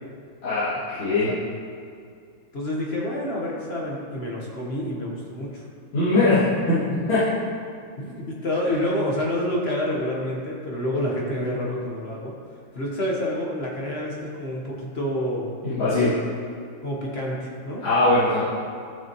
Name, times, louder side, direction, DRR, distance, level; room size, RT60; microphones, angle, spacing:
voice 1, 1.0-1.3 5.9-6.4 6.7-6.8 7.1-7.2 15.6-16.1 17.8-18.4, left 2 dB, 85° left, -15 dB, 3.2 m, -20 dB
voice 2, 2.5-5.7 8.0-12.3 12.7-15.5 16.8-17.8, left 1 dB, 35° left, -3 dB, 1.2 m, -28 dB
13.5 x 6.0 x 3.0 m, 2.2 s
omnidirectional pair, 2.1 m